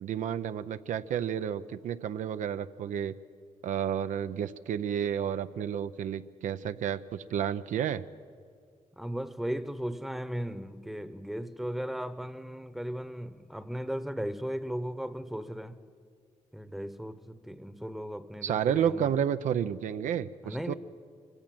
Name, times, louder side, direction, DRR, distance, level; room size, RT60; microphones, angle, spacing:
voice 1, 0.0-3.2 3.6-8.1 18.4-20.7, right 9 dB, 90° right, 0.6 m, -31 dB
voice 2, 9.0-15.8 16.5-19.1 20.4-20.7, equal, ahead, 0.9 m, -36 dB
24.0 x 16.0 x 7.7 m
cardioid pair, 90°, 13 cm